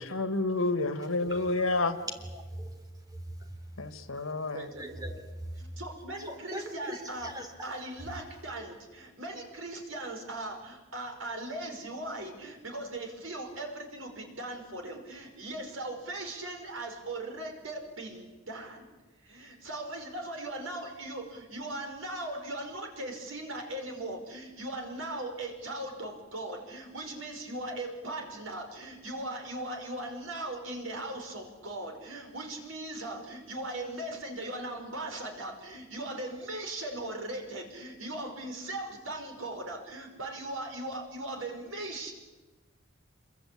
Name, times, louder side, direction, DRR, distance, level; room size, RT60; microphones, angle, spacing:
voice 1, 0.0-1.9 3.8-4.7, left 2 dB, 90° left, 9 dB, 1.9 m, -29 dB
voice 2, 1.2-5.8 6.2-7.8, right 1 dB, 20° right, 5 dB, 3.6 m, -42 dB
voice 3, 4.5-5.0 5.6-7.3 7.6-18.9 19.2-42.1, right 1 dB, 80° right, 4 dB, 5.4 m, -39 dB
27.0 x 23.0 x 8.6 m, 1.2 s
head